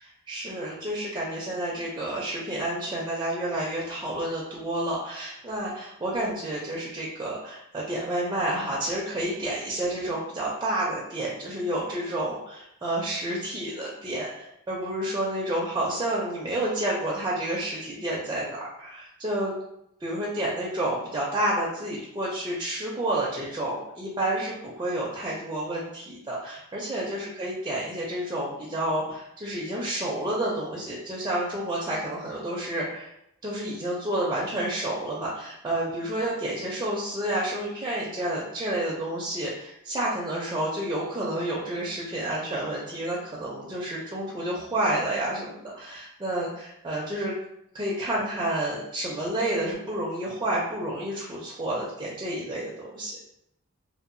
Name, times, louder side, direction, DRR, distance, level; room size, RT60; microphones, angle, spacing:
voice 1, 0.3-19.6 20.0-33.1 33.4-47.3 47.7-53.2, right 1 dB, 15° right, -5 dB, 0.4 m, -30 dB
2.7 x 2.2 x 2.5 m, 0.78 s
head